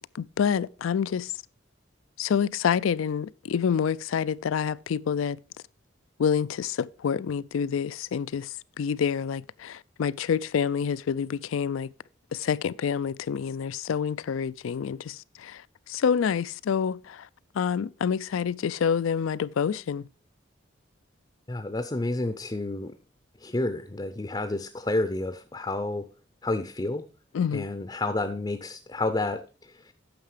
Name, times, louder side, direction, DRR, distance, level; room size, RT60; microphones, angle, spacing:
voice 1, 0.2-1.3 2.2-5.4 6.2-8.5 8.8-11.9 12.3-15.2 15.5-15.6 15.9-17.2 17.6-20.0 27.3-27.7, left 7 dB, 90° left, 0.4 m, -27 dB
voice 2, 21.5-22.9 23.4-26.1 26.4-27.0 27.5-29.4, left 2 dB, 20° left, 0.5 m, -30 dB
9.4 x 6.5 x 4.9 m
head